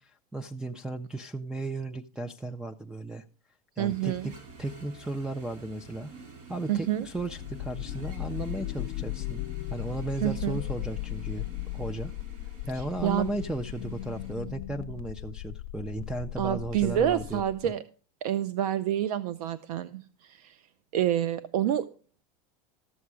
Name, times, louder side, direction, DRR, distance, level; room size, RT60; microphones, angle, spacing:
voice 1, 0.0-3.2 3.8-4.3 4.6-6.1 6.5-9.4 9.7-11.4 11.7-12.1 12.7-17.7, right 2 dB, 5° right, 10 dB, 0.4 m, -35 dB
sound 1, 3.8-14.3, right 3 dB, 45° right, 5.5 m, -50 dB
voice 2, 3.8-4.3 6.7-7.1 10.2-10.6 12.7-13.3 16.4-17.8 18.2-20.6 20.9-21.9, right 11 dB, 75° right, 15 dB, 0.7 m, -28 dB
sound 2, 7.0-17.7, left 17 dB, 65° left, 0.7 m, -37 dB
14.0 x 7.1 x 4.8 m, 0.38 s
supercardioid pair, 135°, 19 cm